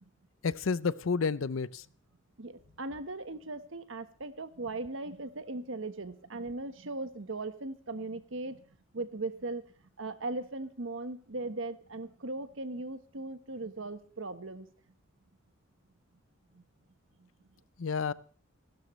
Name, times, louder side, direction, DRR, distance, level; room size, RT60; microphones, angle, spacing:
voice 1, 0.4-1.8 17.8-18.1, left 5 dB, 80° left, 0.6 m, -30 dB
voice 2, 2.4-8.6 8.9-9.6 10.0-14.7 16.5-16.6 17.2-17.3, right 2 dB, 75° right, 1.3 m, -38 dB
25.5 x 12.5 x 3.2 m
head